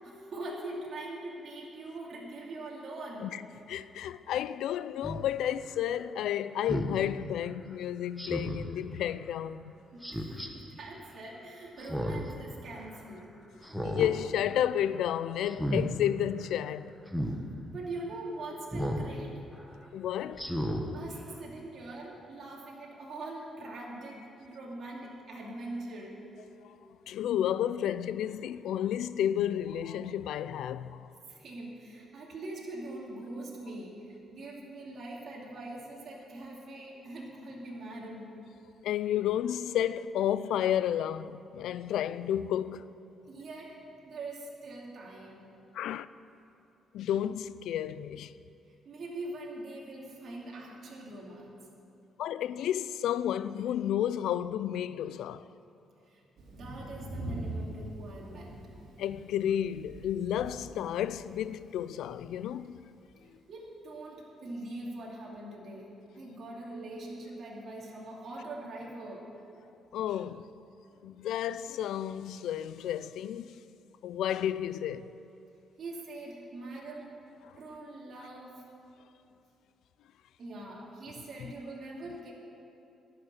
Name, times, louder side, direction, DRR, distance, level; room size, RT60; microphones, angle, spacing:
voice 1, 0.0-3.3 9.9-13.3 17.6-19.5 20.9-26.2 31.3-38.3 43.2-43.8 44.0-45.5 48.8-51.5 56.1-56.2 56.5-58.6 63.5-69.3 75.8-77.1 77.6-78.6 80.4-82.3, right 2 dB, 55° right, 2.7 m, -42 dB
voice 2, 3.7-9.7 13.8-17.0 19.9-20.5 26.6-26.8 27.1-31.1 38.8-42.9 45.7-46.1 46.9-48.3 52.2-55.4 59.0-62.8 69.9-70.5 71.0-73.6 74.0-75.1 77.4-77.5 81.4-81.5, left 10 dB, 80° left, 0.4 m, -31 dB
Speech synthesizer, 5.0-5.2 6.7-7.0 8.2-8.7 10.0-10.5 11.8-12.3 12.7-12.8 13.6-14.1 14.5-14.8 15.5-15.9 17.1-17.4 18.7-19.1 19.5-19.7 20.3-20.8 21.3-21.4, equal, ahead, 1.3 m, -33 dB
Thunder, 56.4-63.2, right 1 dB, 80° right, 2.5 m, -44 dB
11.5 x 6.8 x 9.7 m
cardioid pair, 90°, 0 cm